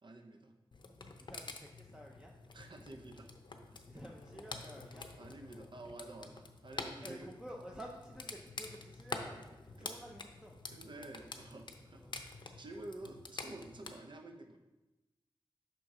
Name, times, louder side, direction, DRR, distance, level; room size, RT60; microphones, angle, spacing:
voice 1, 0.0-0.5 2.5-3.3 3.9-4.2 5.2-7.3 9.3-9.5 9.8-10.0 10.7-14.6, right 2 dB, 55° right, 4 dB, 0.8 m, -50 dB
sound 1, 0.7-13.9, left 3 dB, 55° left, 0.6 m, -48 dB
voice 2, 1.2-2.3 3.9-5.1 7.0-11.1 12.0-12.1, equal, 10° right, -1 dB, 0.7 m, -51 dB
6.1 x 3.8 x 4.8 m, 1.0 s
cardioid pair, 55°, 10 cm